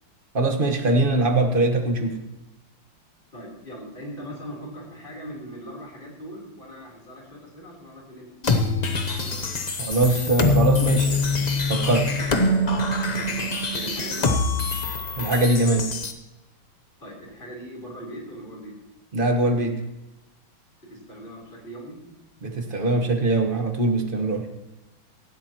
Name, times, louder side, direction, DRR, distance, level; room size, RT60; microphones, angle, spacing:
voice 1, 0.3-2.2 9.8-11.1 11.7-12.1 15.2-15.9 19.1-19.7 22.4-24.5, right 2 dB, 30° right, 4 dB, 1.3 m, -22 dB
voice 2, 3.3-8.4 12.4-12.5 13.1-14.5 17.0-18.7 20.8-22.0, equal, 25° left, -2 dB, 3.9 m, -40 dB
sound 1, 8.4-16.1, left 2 dB, 50° left, 0.5 m, -24 dB
17.5 x 13.0 x 3.0 m, 0.99 s
omnidirectional pair, 2.3 m